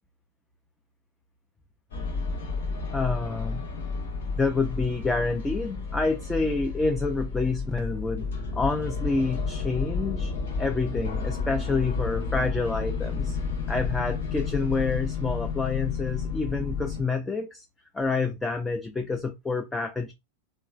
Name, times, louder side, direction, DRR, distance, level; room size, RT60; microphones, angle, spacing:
sound 1, 1.9-17.0, left 4 dB, 60° left, 0.8 m, -31 dB
voice 1, 2.9-3.6 4.4-8.3 8.5-10.3 10.6-13.4 13.7-17.6 17.9-20.1, left 3 dB, 10° left, 0.4 m, -28 dB
3.0 x 2.2 x 2.3 m
figure-of-eight pair, 90°, 0 cm